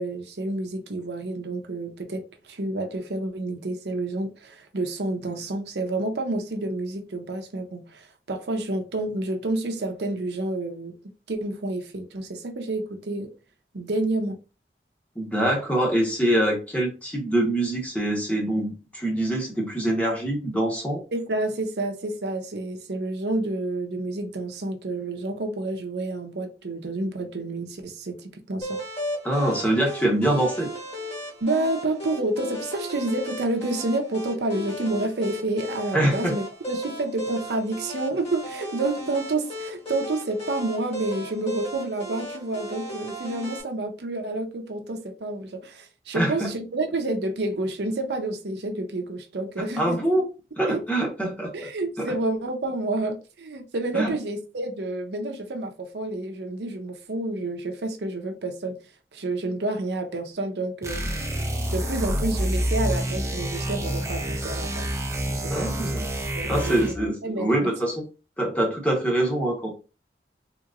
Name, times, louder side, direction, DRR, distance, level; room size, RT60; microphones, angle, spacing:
voice 1, 0.0-11.0 11.3-13.3 13.7-14.4 21.1-28.8 31.4-50.0 50.7-50.8 51.5-58.8 59.1-61.1 61.7-64.9 65.2-65.9 66.4-67.7, right 2 dB, 75° right, 0.7 m, -29 dB
voice 2, 15.2-21.0 29.2-30.7 35.9-36.4 46.1-46.5 49.8-50.3 50.6-51.5 52.0-52.1 53.9-54.1 65.5-66.1 66.5-68.0 68.4-69.7, right 1 dB, 10° left, 0.9 m, -24 dB
sound 1, 28.6-43.6, equal, 35° left, 1.5 m, -36 dB
sound 2, 60.8-67.1, right 1 dB, 15° right, 0.6 m, -28 dB
3.6 x 2.9 x 2.5 m
head